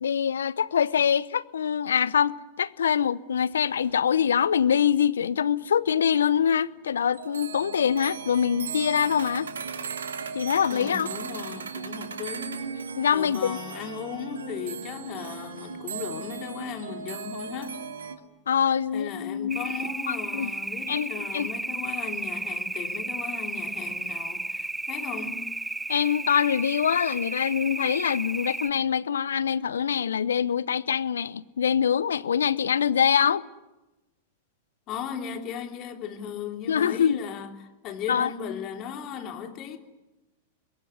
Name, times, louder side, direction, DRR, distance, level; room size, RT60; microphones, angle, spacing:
voice 1, 0.0-9.5 10.3-11.1 13.0-13.6 18.5-19.7 20.3-20.5 20.9-21.5 25.9-33.4 36.7-37.2 38.1-38.3, left 8 dB, 75° left, 0.8 m, -24 dB
sound 1, 3.5-3.6 3.8-5.8 6.1-6.2 6.7-6.8 7.1-18.1, right 5 dB, 75° right, 2.9 m, -37 dB
voice 2, 10.7-12.8 13.1-17.8 18.9-25.5 34.9-39.8, left 7 dB, 40° left, 3.5 m, -37 dB
sound 2, 19.5-28.7, right 2 dB, 5° right, 0.9 m, -33 dB
25.5 x 22.0 x 9.9 m
figure-of-eight pair, 100°, 0 cm